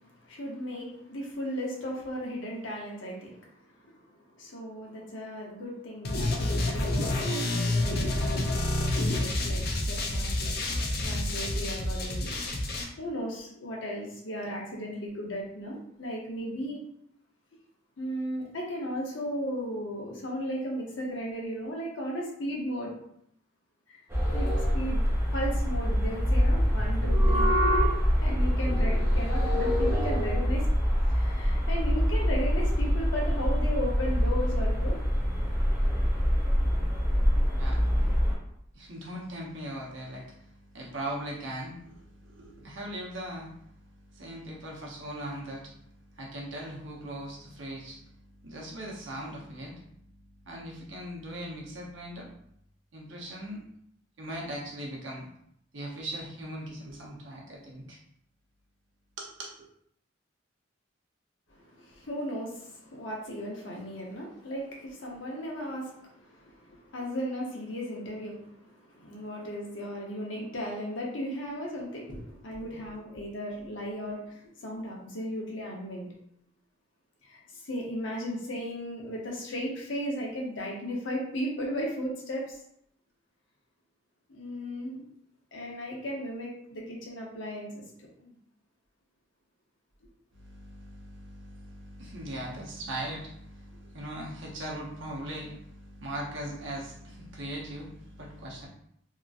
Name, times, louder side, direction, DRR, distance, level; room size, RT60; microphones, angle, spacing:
voice 1, 0.2-3.4 3.9-4.0 4.4-10.5 11.0-12.3 13.0-16.8 18.0-23.0 23.9-24.0 24.3-25.0 25.3-27.9 28.2-30.7 31.1-35.0 61.5-76.1 77.2-82.6 84.3-85.1 85.5-87.8 88.2-88.3, equal, 75° left, -2 dB, 0.8 m, -36 dB
sound 1, 6.0-12.8, left 1 dB, 50° left, 0.5 m, -28 dB
sound 2, 24.1-38.3, equal, 10° right, 0.6 m, -25 dB
voice 2, 37.6-38.1 38.7-52.3 52.9-53.6 54.2-55.3 55.7-58.0 59.2-59.6 90.3-98.7, right 1 dB, 75° right, -2 dB, 0.8 m, -40 dB
2.9 x 2.5 x 2.5 m, 0.71 s
head